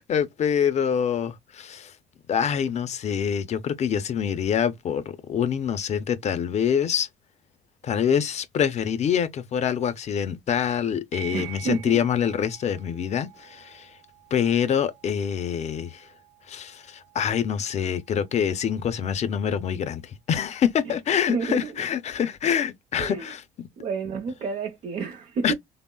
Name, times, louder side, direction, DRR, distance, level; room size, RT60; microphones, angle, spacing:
voice 1, 0.0-1.9 2.3-5.0 5.3-7.1 7.8-13.9 14.3-16.1 16.5-23.4 25.4-25.5, left 8 dB, 40° left, 0.5 m, -25 dB
sound 1, 11.1-20.1, right 18 dB, 85° right, 0.6 m, -48 dB
voice 2, 11.3-12.0 20.8-21.0 21.3-21.7 23.0-23.3 23.8-25.5, right 5 dB, 45° right, 0.6 m, -30 dB
3.5 x 2.0 x 2.2 m
cardioid pair, 110°, 17 cm